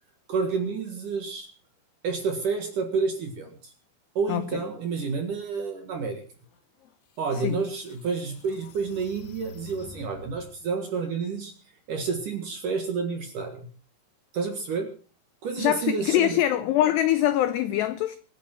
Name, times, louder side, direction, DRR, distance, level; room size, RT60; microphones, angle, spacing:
voice 1, 0.3-1.5 2.0-3.7 4.2-6.2 7.2-11.5 11.9-13.7 14.3-14.9 15.4-16.3, right 5 dB, 60° right, 2.4 m, -29 dB
sound 1, 6.8-6.9 7.5-10.6, left 3 dB, 65° left, 3.0 m, -47 dB
voice 2, 15.6-18.2, left 12 dB, 85° left, 2.4 m, -23 dB
24.5 x 10.0 x 4.4 m
omnidirectional pair, 5.9 m